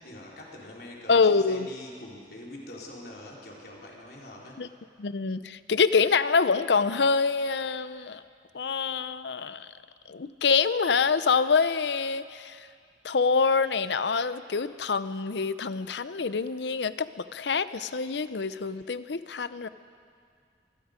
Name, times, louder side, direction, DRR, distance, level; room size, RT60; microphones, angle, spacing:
voice 1, 0.0-4.6, left 1 dB, 60° left, -3 dB, 3.8 m, -44 dB
voice 2, 1.1-1.7 4.6-4.7 5.0-8.2 8.5-9.7 10.1-12.7 13.0-19.7, left 5 dB, 75° left, 14 dB, 0.6 m, -26 dB
25.0 x 20.0 x 5.1 m, 2.2 s
head